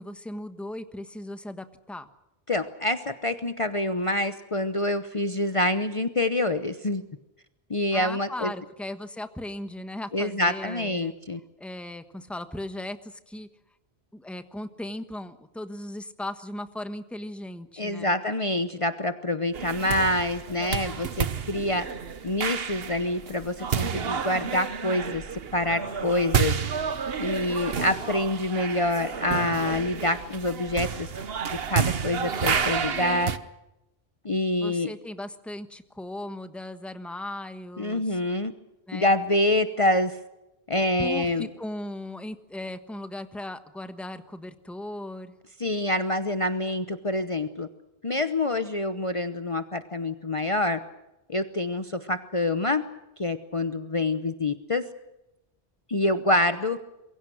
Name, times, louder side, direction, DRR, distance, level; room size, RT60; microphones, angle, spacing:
voice 1, 0.0-2.1 7.9-11.1 11.6-13.5 14.1-18.1 34.6-38.2 38.9-39.1 41.0-45.4, left 1 dB, ahead, 9 dB, 1.2 m, -37 dB
voice 2, 2.5-7.0 7.7-8.5 10.1-11.4 17.8-21.9 22.2-26.5 27.2-31.1 31.5-33.4 34.2-34.9 37.8-38.5 38.9-40.2 40.7-41.5 45.6-47.7 48.0-50.8 51.3-52.8 53.2-54.8 55.9-56.8, left 1 dB, 35° left, 9 dB, 1.0 m, -26 dB
sound 1, 19.5-33.4, right 7 dB, 75° right, 1.3 m, -30 dB
26.5 x 23.0 x 6.3 m, 0.95 s
omnidirectional pair, 1.0 m